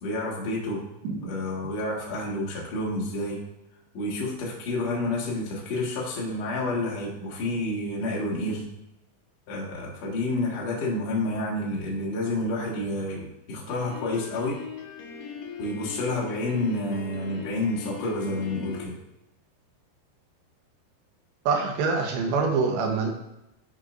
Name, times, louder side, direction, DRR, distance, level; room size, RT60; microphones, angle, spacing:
voice 1, 0.0-0.8 1.2-3.4 3.9-8.7 9.5-14.6 15.6-19.0, left 2 dB, 55° left, -4 dB, 2.0 m, -29 dB
Piano, 13.7-18.8, left 7 dB, 90° left, 3.4 m, -39 dB
voice 2, 21.5-23.1, right 4 dB, 85° right, 2 dB, 3.1 m, -25 dB
9.9 x 6.1 x 2.5 m, 0.87 s
omnidirectional pair, 5.2 m